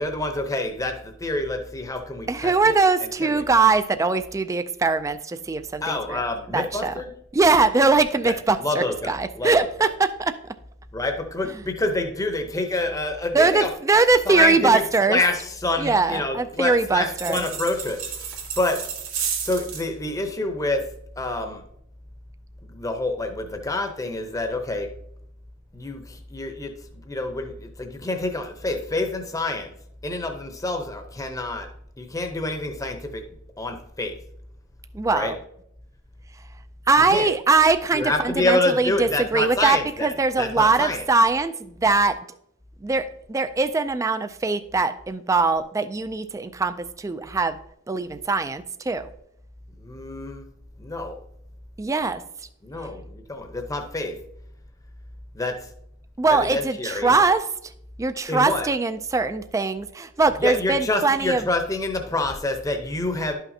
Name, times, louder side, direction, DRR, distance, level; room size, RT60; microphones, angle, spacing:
voice 1, 0.0-2.8 3.2-3.4 5.8-7.1 8.2-9.7 10.9-13.7 14.3-18.8 19.4-20.9 21.2-21.6 22.6-24.9 25.7-29.7 30.0-31.7 32.0-33.2 33.6-34.1 35.1-35.3 37.0-37.3 37.9-41.0 49.8-50.5 50.8-51.2 52.6-54.2 55.3-55.6 56.3-57.1 58.3-58.7 60.4-63.3, left 2 dB, 15° left, 5 dB, 0.7 m, -27 dB
voice 2, 2.3-6.2 6.5-6.9 7.3-10.4 13.3-15.2 15.8-17.4 34.9-35.4 36.9-42.2 42.8-47.6 47.9-49.1 51.8-52.2 56.2-57.4 58.0-61.4, right 3 dB, 15° right, 11 dB, 0.3 m, -21 dB
sound 1, 17.1-19.9, right 7 dB, 90° right, 1.6 m, -31 dB
11.5 x 5.8 x 2.7 m, 0.74 s
head